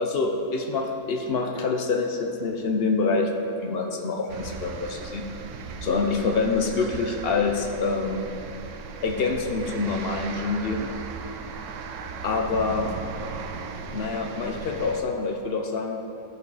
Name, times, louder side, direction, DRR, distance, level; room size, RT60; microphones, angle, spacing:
voice 1, 0.0-3.3 3.6-5.3 5.8-8.3 9.0-10.9 12.2-12.9 13.9-16.0, left 4 dB, 55° left, 3 dB, 0.7 m, -26 dB
sound 1, 4.3-15.0, right 4 dB, 65° right, 0.8 m, -37 dB
11.0 x 5.4 x 4.0 m, 2.6 s
omnidirectional pair, 1.5 m